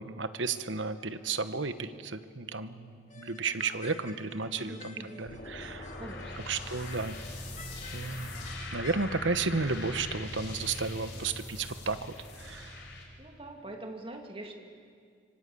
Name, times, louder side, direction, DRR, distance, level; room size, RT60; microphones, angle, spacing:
voice 1, 0.0-5.9 6.5-7.2 7.9-12.8, right 4 dB, 75° right, 11 dB, 1.2 m, -33 dB
sound 1, 3.1-9.1, left 4 dB, 40° left, 2.2 m, -51 dB
voice 2, 4.6-5.2 6.0-6.5 11.0-11.2 13.2-14.5, right 1 dB, 25° right, 3 dB, 2.5 m, -44 dB
sound 2, 5.2-13.0, left 2 dB, 60° left, 5.1 m, -41 dB
26.0 x 24.0 x 8.5 m, 2.2 s
head